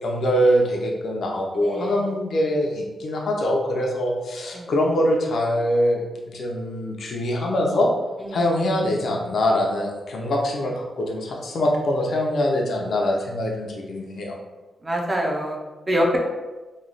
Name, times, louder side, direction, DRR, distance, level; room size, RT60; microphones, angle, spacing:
voice 1, 0.0-7.9 8.3-14.3, equal, 60° left, 0 dB, 0.6 m, -23 dB
voice 2, 1.6-2.0 4.5-4.7 8.2-8.5 14.8-15.6 15.9-16.2, equal, 20° right, -1 dB, 0.5 m, -25 dB
3.0 x 2.3 x 3.8 m, 1.2 s
wide cardioid pair, 160°, 0 cm